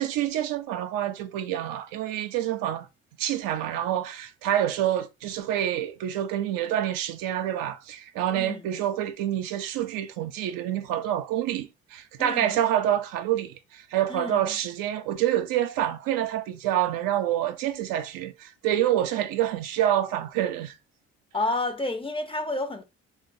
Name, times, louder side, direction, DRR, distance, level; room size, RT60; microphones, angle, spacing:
voice 1, 0.0-2.9 3.2-20.8, right 11 dB, 75° right, 0.5 m, -27 dB
voice 2, 12.2-12.6 14.1-14.6 21.3-22.8, left 2 dB, 15° left, 0.5 m, -30 dB
3.0 x 2.0 x 2.6 m
hypercardioid pair, 50°, 34 cm